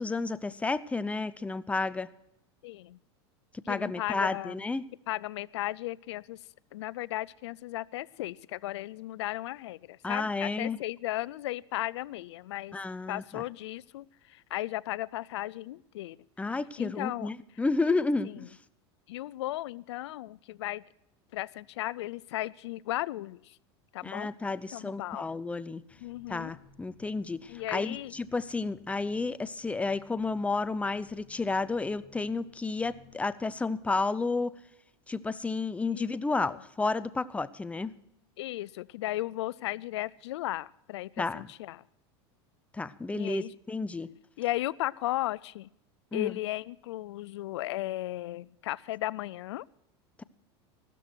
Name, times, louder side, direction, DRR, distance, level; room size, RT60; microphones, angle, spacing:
voice 1, 0.0-2.1 3.7-4.8 10.0-10.8 12.7-13.4 16.4-18.6 24.0-25.8 26.3-34.5 35.1-37.9 41.2-41.4 42.7-44.1 46.1-46.4 50.2-50.3, left 3 dB, 10° left, 16 dB, 0.6 m, -31 dB
voice 2, 2.6-3.0 3.7-4.5 5.1-6.4 6.7-12.8 13.1-16.2 16.8-17.3 18.2-18.5 19.1-20.8 21.3-23.6 23.9-24.3 24.7-25.3 26.0-26.5 27.5-28.1 35.9-36.2 36.5-36.6 38.4-41.8 43.1-43.5 44.4-45.7 46.1-49.6, left 16 dB, 85° left, 23 dB, 0.5 m, -35 dB
sound 1, 25.9-34.0, left 4 dB, 35° left, 5.1 m, -59 dB
15.5 x 13.0 x 4.5 m, 0.81 s
supercardioid pair, 115°, 14 cm